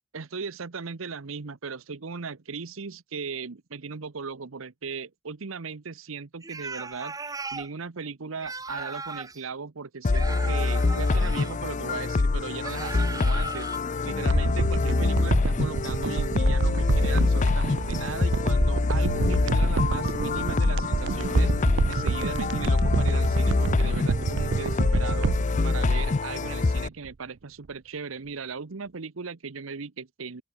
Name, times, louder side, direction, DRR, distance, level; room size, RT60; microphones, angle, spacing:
voice 1, 0.1-13.7 14.0-21.5 21.9-25.3 25.6-30.4, right 5 dB, 85° right, 0.9 m, -37 dB
sound 1, 6.4-7.7 8.4-9.4 10.1-11.5 12.6-13.8, right 3 dB, 20° right, 1.3 m, -37 dB
sound 2, 10.0-26.9, left 3 dB, 35° left, 0.5 m, -25 dB
sound 3, 14.3-26.8 27.0-27.1, right 4 dB, 60° right, 0.5 m, -28 dB
open air
head